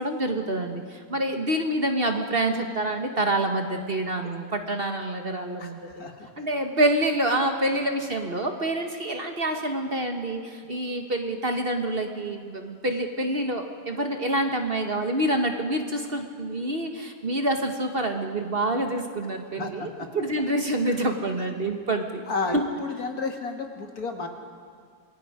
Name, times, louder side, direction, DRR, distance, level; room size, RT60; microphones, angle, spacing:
voice 1, 0.0-6.1 6.4-22.2 22.5-22.6, right 1 dB, 35° right, 5 dB, 1.6 m, -27 dB
voice 2, 5.6-6.3 19.5-20.1 20.8-20.9 22.3-24.3, left 3 dB, 65° left, 4 dB, 2.4 m, -32 dB
28.0 x 21.5 x 5.1 m, 2.2 s
omnidirectional pair, 1.7 m